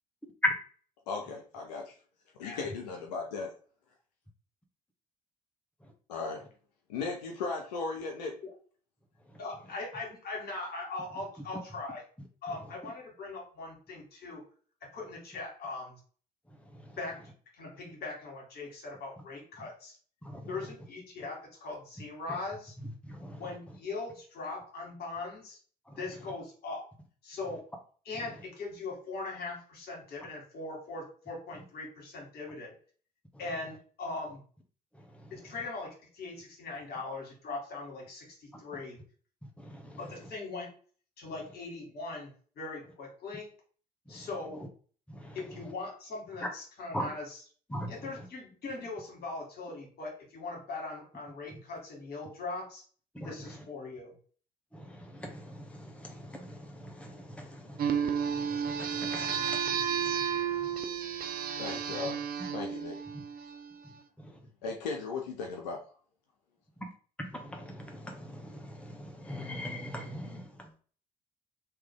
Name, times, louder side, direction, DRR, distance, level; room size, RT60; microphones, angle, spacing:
voice 1, 1.1-1.9 2.4-3.5 6.1-6.4 6.9-8.4 61.6-62.2 62.5-63.0 64.6-65.8, left 4 dB, 75° left, 0.6 m, -36 dB
voice 2, 9.4-12.0 12.4-14.4 14.9-16.0 17.0-17.2 17.5-20.0 20.5-22.7 23.4-25.6 26.0-26.9 27.2-27.6 28.1-32.8 33.4-34.4 35.3-39.0 40.0-40.7 41.2-43.5 44.1-44.6 45.3-47.4 47.9-52.8 53.2-54.1, left 3 dB, 50° left, 1.8 m, -40 dB
voice 3, 16.5-17.0 20.2-20.7 23.0-23.5 25.9-26.0 34.9-35.5 39.4-40.2 44.1-44.3 44.5-44.7 45.1-45.4 46.9-47.1 47.7-48.3 53.1-53.6 54.7-60.7 63.1-63.2 63.8-64.5 66.8-66.9 67.2-70.7, left 1 dB, 5° left, 1.0 m, -40 dB
sound 1, 57.8-63.8, right 7 dB, 45° right, 0.6 m, -32 dB
3.2 x 2.9 x 3.6 m
figure-of-eight pair, 50°, 21 cm